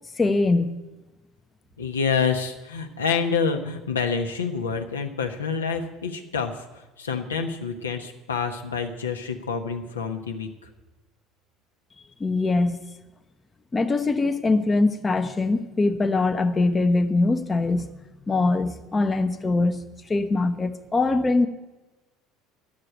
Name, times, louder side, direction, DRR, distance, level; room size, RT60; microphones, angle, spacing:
voice 1, 0.2-0.7 12.2-12.8 13.7-17.9 18.3-21.5, left 3 dB, 25° left, 7 dB, 0.7 m, -22 dB
voice 2, 1.8-10.7, left 5 dB, 80° left, 5 dB, 0.9 m, -27 dB
10.5 x 6.7 x 9.1 m, 1.1 s
figure-of-eight pair, 65°, 0 cm